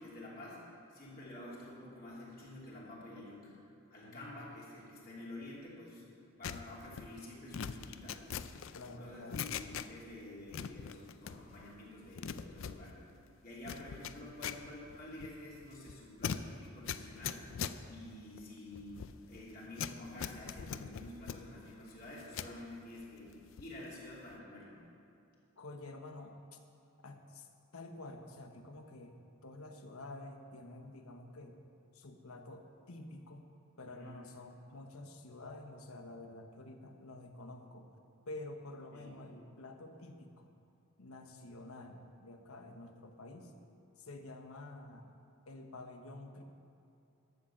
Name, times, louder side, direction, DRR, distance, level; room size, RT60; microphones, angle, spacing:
voice 1, 0.0-3.5 3.9-6.0 6.4-8.6 8.9-12.9 13.4-17.4 17.9-19.0 19.3-23.3 23.6-24.8 33.9-34.2 38.9-39.1, left 1 dB, 40° left, -6 dB, 2.8 m, -49 dB
voice 2, 4.0-4.5 8.7-9.5 25.6-26.6 27.0-27.5 27.7-31.6 31.9-33.5 33.8-37.9 38.2-40.5 41.0-43.5 44.0-45.1 45.5-46.4, left 2 dB, 80° left, 5 dB, 1.1 m, -49 dB
sound 1, 6.4-10.2 10.5-11.7 12.0-22.6 23.0-23.8 24.1-24.4, left 7 dB, 60° left, 0.4 m, -43 dB
12.0 x 6.4 x 7.2 m, 2.6 s
head